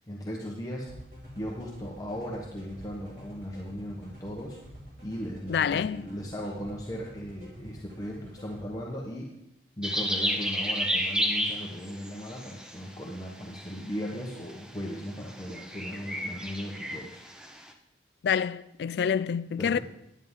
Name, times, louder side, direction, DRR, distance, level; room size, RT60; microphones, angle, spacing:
voice 1, 0.1-1.0 1.3-4.6 5.0-9.3 9.8-17.2 19.6-19.8, equal, 20° left, 1.0 m, -37 dB
sound 1, 0.9-8.6, equal, 55° right, 3.6 m, -47 dB
voice 2, 5.5-6.1 18.2-19.8, left 7 dB, 65° left, 0.3 m, -27 dB
sound 2, 9.8-13.0 13.4-13.9 14.2-14.6 14.9-17.7, equal, 5° right, 0.6 m, -31 dB
10.5 x 9.4 x 3.7 m
head